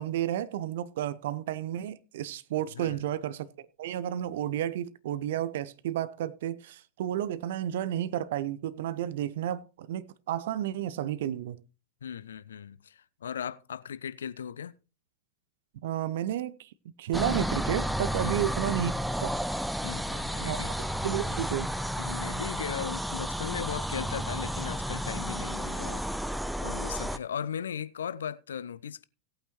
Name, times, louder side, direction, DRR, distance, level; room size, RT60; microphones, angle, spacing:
voice 1, 0.0-3.5 3.8-11.6 15.8-16.7 17.0-19.4 20.4-20.6 21.0-21.7, right 11 dB, 55° right, 0.6 m, -32 dB
voice 2, 12.0-14.7 18.2-18.3 19.8-20.8 21.3-21.4 22.0-26.0 26.3-29.0, left 8 dB, 65° left, 0.4 m, -38 dB
sound 1, 17.1-27.2, equal, ahead, 0.5 m, -32 dB
17.0 x 8.8 x 3.0 m
figure-of-eight pair, 90°, 0 cm